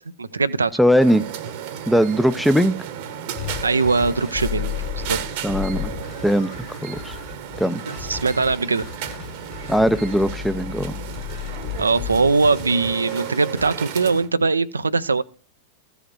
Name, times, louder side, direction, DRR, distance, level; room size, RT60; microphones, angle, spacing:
voice 1, 0.2-0.7 3.6-4.7 5.1-5.2 7.9-8.9 11.8-15.2, right 4 dB, 75° right, 0.5 m, -21 dB
voice 2, 0.8-1.3 1.9-2.7 5.4-5.9 6.2-7.2 7.6-7.8 9.7-11.0, equal, ahead, 0.6 m, -19 dB
sound 1, 1.0-14.3, right 8 dB, 50° right, 1.0 m, -34 dB
sound 2, 3.4-13.7, left 11 dB, 40° left, 2.3 m, -34 dB
14.5 x 5.0 x 6.2 m
figure-of-eight pair, 90°, 0 cm